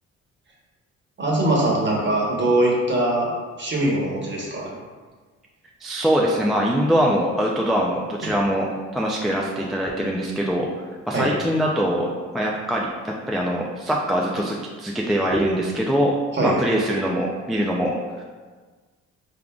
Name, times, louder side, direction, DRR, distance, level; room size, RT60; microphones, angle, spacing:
voice 1, 1.2-3.3 3.6-4.7 8.2-8.3 11.1-11.3 16.3-16.6, right 1 dB, 40° right, -3 dB, 1.1 m, -22 dB
voice 2, 5.8-8.7 8.9-10.7 11.1-12.9 13.3-16.1 16.4-18.2, equal, ahead, -3 dB, 0.3 m, -23 dB
3.6 x 3.6 x 2.3 m, 1.4 s
cardioid pair, 90°, 30 cm